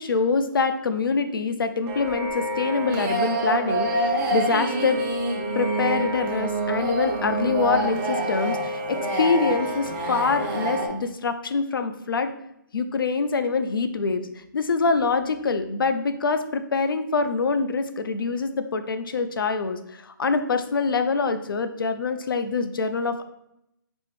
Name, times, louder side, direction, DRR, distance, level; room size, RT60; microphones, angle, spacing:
voice 1, 0.0-5.0 5.5-12.3 12.7-14.2 14.5-23.2, left 4 dB, 80° left, 9 dB, 0.5 m, -25 dB
sound 1, 1.9-10.9, right 1 dB, 15° right, 0.5 m, -26 dB
4.3 x 3.2 x 3.2 m, 0.80 s
hypercardioid pair, 150°, 11 cm